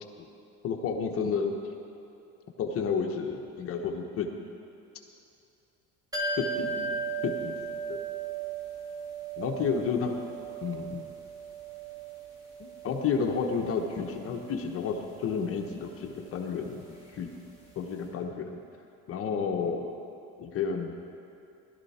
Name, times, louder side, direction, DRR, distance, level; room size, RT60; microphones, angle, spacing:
voice 1, 0.6-1.5 2.6-4.3 6.4-8.0 9.4-10.3 10.6-11.0 12.6-17.3 17.8-18.6 19.1-19.9 20.4-20.9, left 6 dB, 45° left, 3 dB, 1.2 m, -31 dB
sound 1, 6.1-17.7 18.0-18.1, right 4 dB, 10° right, 2.7 m, -38 dB
16.5 x 12.0 x 4.3 m, 2.7 s
cardioid pair, 135°, 31 cm